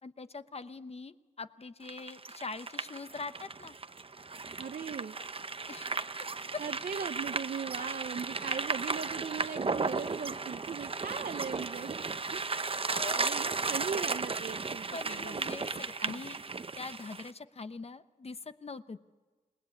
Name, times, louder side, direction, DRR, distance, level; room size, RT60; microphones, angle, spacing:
voice 1, 0.0-3.8 5.7-6.0 12.6-13.2 14.9-16.4 16.8-19.0, left 4 dB, 45° left, 12 dB, 0.9 m, -43 dB
sound 1, 1.9-17.3, right 4 dB, 40° right, 0.8 m, -35 dB
voice 2, 4.6-5.2 6.6-12.4 13.2-15.6 16.0-16.2, right 6 dB, 70° right, 7 dB, 0.8 m, -39 dB
28.0 x 19.0 x 8.4 m, 1.3 s
wide cardioid pair, 100°, 15 cm